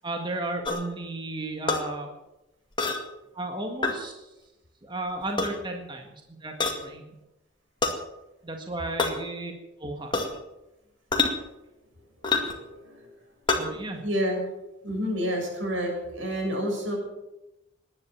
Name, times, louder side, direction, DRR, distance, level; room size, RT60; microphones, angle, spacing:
voice 1, 0.0-2.1 3.3-4.3 4.8-6.2 6.4-7.2 8.4-9.5 9.8-10.2 13.6-14.0, right 2 dB, 25° right, 3 dB, 1.8 m, -34 dB
sound 1, 0.6-0.8 1.7-1.8 2.8-3.0 3.8-4.0 5.2-5.5 6.6-6.8 7.8-8.0 9.0-9.1 10.1-10.4 11.1-11.3 12.2-12.6 13.5-13.6, left 3 dB, 25° left, 2.1 m, -25 dB
voice 2, 12.3-13.1 14.0-14.4 14.8-16.9, equal, 90° right, 1 dB, 7.2 m, -29 dB
18.5 x 11.0 x 7.2 m, 0.95 s
head